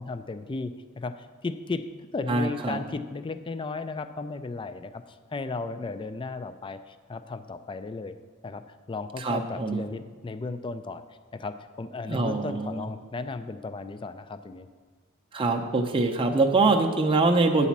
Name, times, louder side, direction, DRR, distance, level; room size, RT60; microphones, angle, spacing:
voice 1, 0.0-1.8 2.1-8.2 8.4-11.0 11.3-14.7, left 3 dB, 25° left, 11 dB, 0.4 m, -35 dB
voice 2, 2.3-2.8 9.2-9.8 12.1-12.9 15.3-17.7, right 3 dB, 25° right, 3 dB, 0.6 m, -24 dB
9.1 x 4.2 x 7.2 m, 1.5 s
head